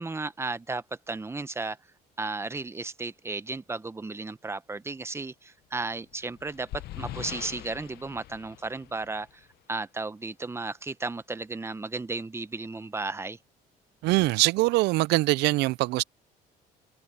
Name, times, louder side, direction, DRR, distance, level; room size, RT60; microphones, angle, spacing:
voice 1, 0.0-1.8 2.2-13.4, right 3 dB, 15° right, 0.9 m, -34 dB
sound 1, 6.0-9.6, left 15 dB, 70° left, 0.8 m, -42 dB
voice 2, 14.0-16.0, right 20 dB, 85° right, 0.4 m, -23 dB
cardioid pair, 110°, 17 cm